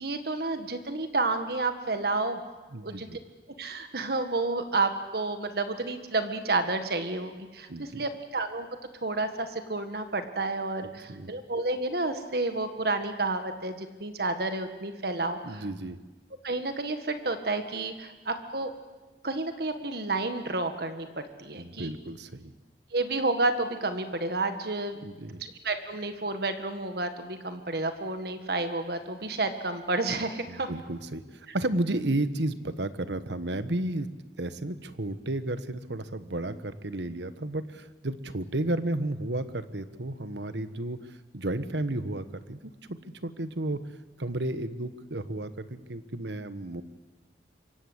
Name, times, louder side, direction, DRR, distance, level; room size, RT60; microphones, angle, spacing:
voice 1, 0.0-2.5 2.8-3.1 3.6-8.7 9.0-15.6 16.4-18.7 19.2-21.1 21.4-21.9 22.9-25.0 25.4-30.7, right 3 dB, 60° right, 8 dB, 1.8 m, -30 dB
voice 2, 2.7-3.2 7.7-8.0 10.8-11.3 15.4-16.0 21.6-22.5 25.0-25.4 30.5-34.1 34.4-41.0 41.3-43.8 44.2-46.8, right 1 dB, 75° right, 12 dB, 1.4 m, -33 dB
26.5 x 23.5 x 8.1 m, 1.2 s
head